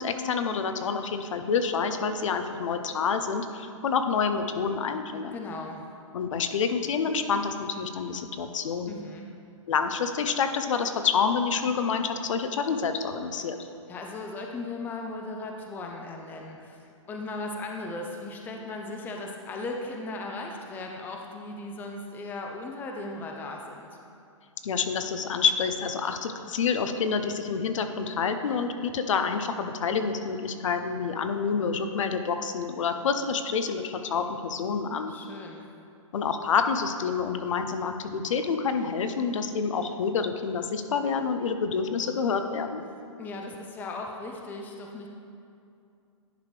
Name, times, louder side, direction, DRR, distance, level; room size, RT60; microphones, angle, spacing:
voice 1, 0.0-5.4 6.1-8.9 9.7-13.6 24.6-35.1 36.1-42.8, left 6 dB, 65° left, 8 dB, 0.6 m, -28 dB
voice 2, 5.3-5.9 8.9-9.3 13.9-23.9 35.1-35.7 43.2-45.1, left 2 dB, 10° left, 1 dB, 0.5 m, -37 dB
10.5 x 4.9 x 3.2 m, 2.5 s
hypercardioid pair, 135°, 17 cm